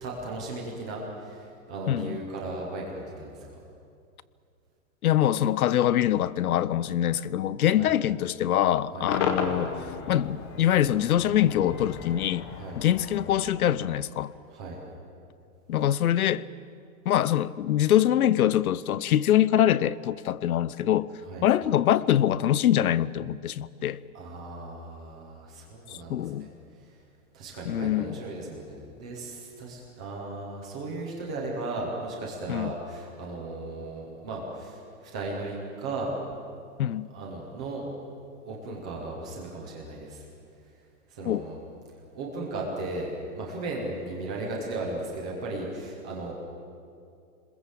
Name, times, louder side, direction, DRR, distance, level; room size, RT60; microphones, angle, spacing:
voice 1, 0.0-3.4 7.8-7.9 8.9-9.1 12.5-12.8 14.5-14.8 21.2-21.4 24.1-26.5 27.3-36.1 37.1-37.8 38.4-40.2 41.1-41.6 42.1-46.3, right 2 dB, 5° right, 0.5 m, -36 dB
voice 2, 1.9-2.2 5.0-9.7 10.1-12.4 12.8-14.3 15.7-16.4 17.1-21.1 21.4-24.0 26.1-26.5 27.6-28.2 32.5-32.7 36.8-37.1 41.2-41.4, left 11 dB, 75° left, 0.9 m, -24 dB
Cheering / Crowd / Fireworks, 9.1-14.4, left 6 dB, 15° left, 0.9 m, -34 dB
27.0 x 21.0 x 7.8 m
hypercardioid pair, 180°, 44 cm